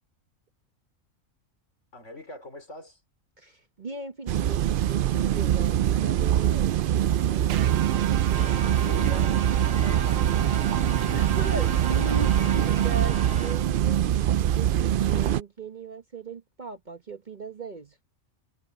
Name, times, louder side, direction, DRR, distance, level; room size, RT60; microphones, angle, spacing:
voice 1, 1.9-3.0 7.7-8.2 8.7-10.6, left 2 dB, 65° left, 4.8 m, -44 dB
voice 2, 3.4-6.9 7.3-7.9 11.1-14.1 14.5-18.0, right 3 dB, 40° right, 1.2 m, -38 dB
sound 1, 4.3-15.4, right 11 dB, 65° right, 0.5 m, -23 dB
sound 2, 7.5-14.0, right 10 dB, 85° right, 1.1 m, -36 dB
sound 3, 8.3-13.5, equal, 5° right, 3.6 m, -38 dB
omnidirectional pair, 1.3 m